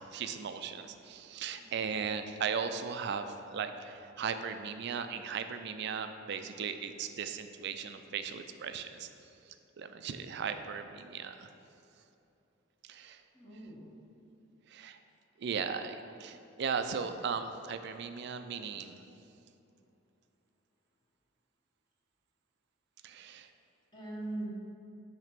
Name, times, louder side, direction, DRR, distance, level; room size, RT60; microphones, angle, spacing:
voice 1, 0.1-3.3 3.5-9.1 9.8-11.5 12.9-13.2 14.7-15.0 15.4-19.0 23.0-23.5, right 6 dB, 55° right, 9 dB, 0.4 m, -37 dB
voice 2, 1.5-2.3 13.3-13.9 23.9-24.5, right 2 dB, 20° left, -6 dB, 1.3 m, -42 dB
7.5 x 2.9 x 5.8 m, 2.8 s
head